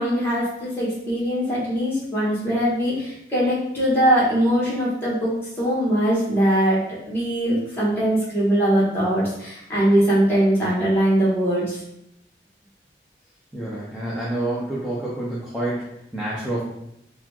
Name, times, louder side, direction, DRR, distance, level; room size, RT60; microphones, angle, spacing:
voice 1, 0.0-6.8 7.0-11.8, right 1 dB, 15° left, -8 dB, 1.3 m, -21 dB
voice 2, 13.5-16.6, right 1 dB, 5° right, -9 dB, 0.5 m, -28 dB
4.0 x 2.4 x 2.9 m, 0.80 s
head